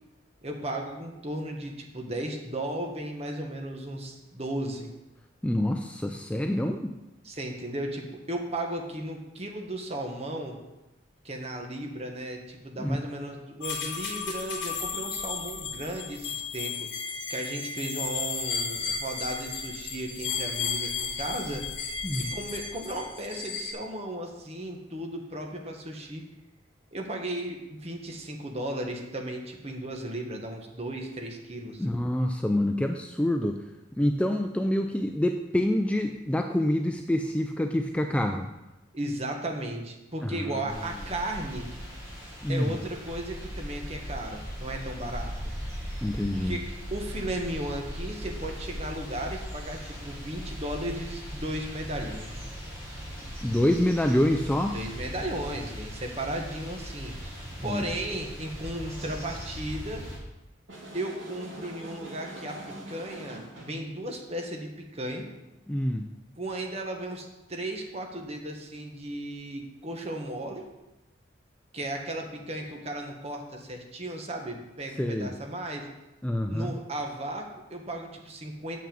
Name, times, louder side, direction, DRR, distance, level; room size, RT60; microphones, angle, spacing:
voice 1, 0.4-4.9 7.2-10.6 11.2-16.9 17.3-21.6 22.2-26.2 26.9-31.9 38.9-41.7 42.5-45.3 46.4-46.6 46.9-52.4 54.7-57.1 57.6-60.1 60.9-62.6 62.9-65.3 66.4-70.6 71.7-75.9 76.5-78.8, right 1 dB, 30° right, 2 dB, 1.3 m, -35 dB
voice 2, 5.4-6.9 12.8-13.0 22.0-22.3 31.8-33.6 34.0-38.5 40.2-40.6 42.4-42.8 46.0-46.6 53.4-54.8 57.6-57.9 65.7-66.1 75.0-75.3 76.2-76.7, left 1 dB, 5° left, 4 dB, 0.3 m, -27 dB
sound 1, 13.6-23.7, left 5 dB, 70° left, 2.5 m, -34 dB
sound 2, 40.7-60.2, equal, 15° right, 3.5 m, -39 dB
sound 3, 60.7-63.8, right 1 dB, 70° right, 2.7 m, -43 dB
7.2 x 5.9 x 7.1 m, 0.99 s
head